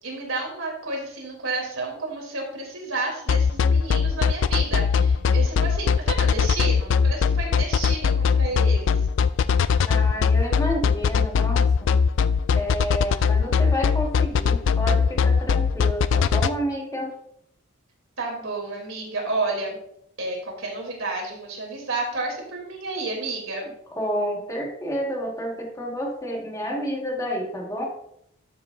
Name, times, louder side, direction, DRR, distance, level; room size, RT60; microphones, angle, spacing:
voice 1, 0.0-9.1 18.2-19.8 20.2-23.7, right 3 dB, 85° right, 0 dB, 3.2 m, -31 dB
sound 1, 3.3-16.5, left 6 dB, 60° left, 0.4 m, -20 dB
voice 2, 9.9-11.7 12.5-17.1 23.9-27.9, equal, 15° left, 0 dB, 1.7 m, -29 dB
13.0 x 7.4 x 2.6 m, 0.72 s
head